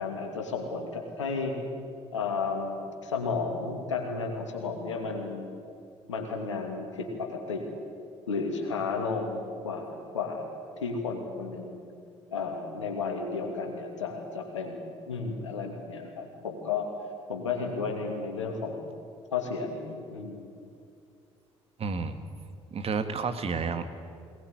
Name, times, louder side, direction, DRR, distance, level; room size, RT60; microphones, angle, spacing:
voice 1, 0.0-1.6 2.1-5.5 6.1-7.6 8.3-10.5 10.8-11.8 12.3-16.9 17.3-18.9 19.3-20.4, left 4 dB, 85° left, 3 dB, 2.8 m, -33 dB
voice 2, 21.8-22.2 22.7-23.9, right 5 dB, 40° right, 8 dB, 2.0 m, -30 dB
21.5 x 19.0 x 9.8 m, 2.4 s
figure-of-eight pair, 50°, 15 cm